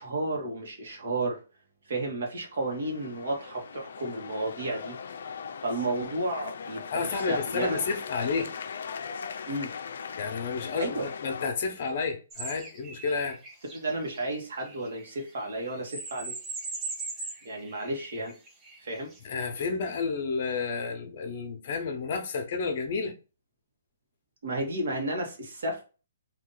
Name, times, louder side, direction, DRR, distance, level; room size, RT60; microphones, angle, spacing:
voice 1, 0.0-1.4 1.9-5.0 5.6-7.8 9.5-9.7 10.8-11.0 13.7-16.3 17.4-18.3 18.8-19.1 24.4-25.8, right 2 dB, 65° right, 1.4 m, -32 dB
sound 1, 2.6-11.5, left 6 dB, 60° left, 0.4 m, -39 dB
voice 2, 6.9-8.5 10.2-13.4 19.2-23.1, left 4 dB, 40° left, 0.8 m, -31 dB
sound 2, 12.3-19.2, right 3 dB, 10° right, 0.6 m, -40 dB
2.8 x 2.7 x 3.8 m
hypercardioid pair, 165°, 0 cm